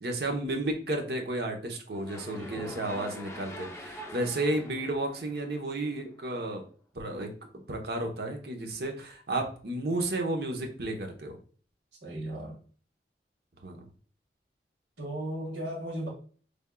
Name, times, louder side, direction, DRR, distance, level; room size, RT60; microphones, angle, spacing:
voice 1, 0.0-6.6 6.9-7.3 7.7-11.4 13.6-13.8, right 2 dB, 65° right, 1.0 m, -32 dB
sound 1, 1.9-6.1, left 1 dB, 15° left, 0.5 m, -44 dB
voice 2, 2.4-2.7 12.0-12.6 15.0-16.1, right 1 dB, 85° right, 1.8 m, -36 dB
5.2 x 3.4 x 2.3 m
head